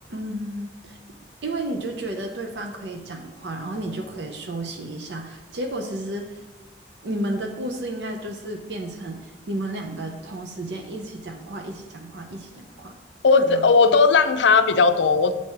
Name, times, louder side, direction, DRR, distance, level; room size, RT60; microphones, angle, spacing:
voice 1, 0.1-1.0 1.4-6.4 7.0-13.0 13.3-13.7, right 1 dB, 75° right, 3 dB, 0.7 m, -32 dB
voice 2, 13.2-15.3, left 4 dB, 85° left, 10 dB, 0.5 m, -17 dB
7.4 x 4.2 x 4.5 m, 1.1 s
head